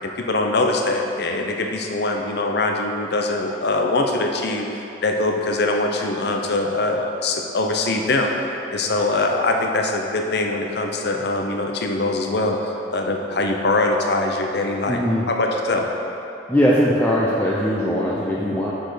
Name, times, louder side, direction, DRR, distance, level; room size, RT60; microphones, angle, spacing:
voice 1, 0.0-4.7 5.0-8.3 8.7-15.0 15.3-15.9, left 2 dB, 60° left, 2 dB, 0.7 m, -22 dB
voice 2, 14.9-15.3 16.5-18.7, equal, 10° left, -6 dB, 0.6 m, -20 dB
6.7 x 6.4 x 4.9 m, 3.0 s
head